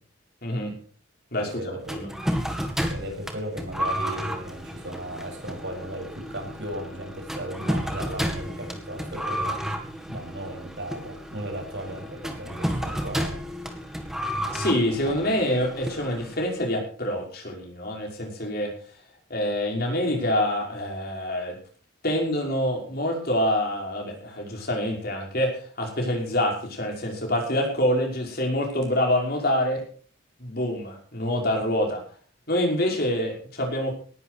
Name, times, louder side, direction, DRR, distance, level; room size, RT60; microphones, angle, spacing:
voice 1, 0.4-0.7 1.3-2.1 14.5-18.7 19.3-21.6 22.0-29.8 30.4-32.0 32.5-33.9, left 1 dB, 50° left, 0 dB, 5.8 m, -26 dB
voice 2, 1.4-2.0 2.9-9.6 10.1-13.4, right 1 dB, 60° right, 2 dB, 7.4 m, -36 dB
sound 1, 1.9-16.6, equal, ahead, 2.1 m, -32 dB
19.0 x 12.0 x 4.9 m, 0.43 s
head